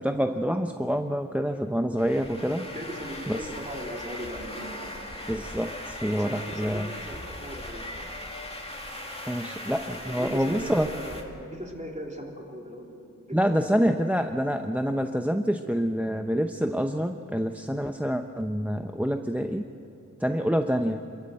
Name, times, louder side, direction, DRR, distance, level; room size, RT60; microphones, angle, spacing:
voice 1, 0.0-2.6 3.3-3.4 5.3-6.9 9.3-10.9 13.3-19.6 20.2-21.0, equal, 5° right, 6 dB, 0.8 m, -27 dB
sound 1, 2.0-11.2, left 1 dB, 20° left, 2.5 m, -39 dB
voice 2, 2.7-5.0 6.2-8.1 10.0-13.9, equal, 20° right, 0 dB, 3.5 m, -39 dB
26.5 x 14.0 x 7.8 m, 2.7 s
wide cardioid pair, 45°, 31 cm